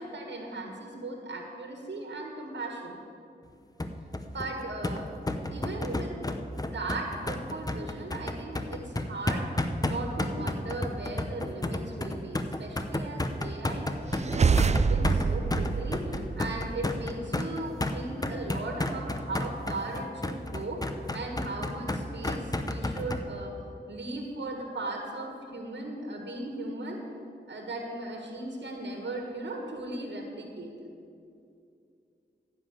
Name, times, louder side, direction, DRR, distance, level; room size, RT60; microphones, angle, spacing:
voice 1, 0.0-3.0 4.3-5.1 5.5-6.3 6.7-9.5 9.8-20.8 21.1-23.5 23.9-27.0 27.5-30.7, right 2 dB, 85° right, 1 dB, 1.6 m, -37 dB
sound 1, 3.8-23.2, left 2 dB, 20° left, 0.8 m, -32 dB
sound 2, 14.1-16.8, right 5 dB, 40° right, 0.4 m, -26 dB
14.5 x 5.8 x 8.4 m, 2.5 s
wide cardioid pair, 90°, 18 cm